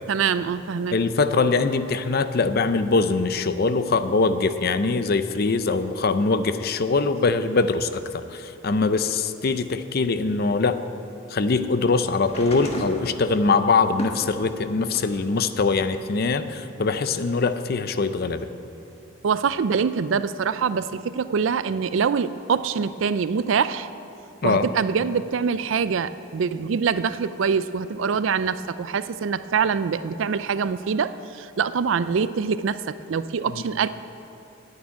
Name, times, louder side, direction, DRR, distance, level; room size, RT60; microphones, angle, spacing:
voice 1, 0.1-1.0 19.2-23.9 24.4-33.9, right 6 dB, 70° right, 14 dB, 0.4 m, -24 dB
voice 2, 0.9-10.8 11.3-18.5 24.4-24.7, left 4 dB, 50° left, 11 dB, 0.5 m, -22 dB
sound 1, 12.2-15.2 15.7-16.9 17.9-18.0, left 1 dB, 30° left, 1.4 m, -36 dB
9.5 x 8.8 x 9.5 m, 2.9 s
head